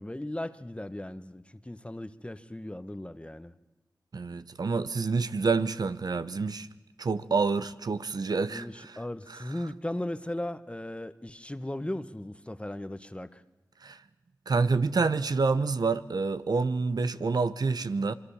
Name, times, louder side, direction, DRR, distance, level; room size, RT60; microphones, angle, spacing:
voice 1, 0.0-3.5 8.5-13.4, left 1 dB, 15° left, 1.3 m, -37 dB
voice 2, 4.1-6.7 7.0-9.0 9.3-9.4 13.8-14.0 14.5-18.1, right 4 dB, 65° right, 1.0 m, -28 dB
25.5 x 22.0 x 7.2 m
cardioid pair, 45°, 7 cm